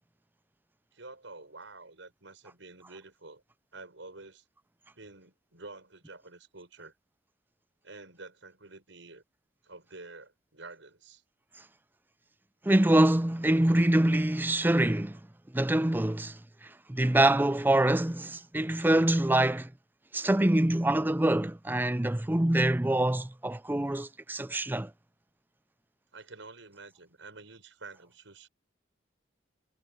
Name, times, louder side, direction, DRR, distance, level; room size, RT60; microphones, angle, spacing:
voice 1, 0.9-3.4 3.7-4.4 5.0-6.9 7.8-9.2 9.6-11.2 26.1-28.5, right 3 dB, 80° right, 5.7 m, -49 dB
voice 2, 12.6-15.2 15.5-16.4 16.9-19.7 20.1-24.9, right 1 dB, 10° right, 0.5 m, -25 dB
head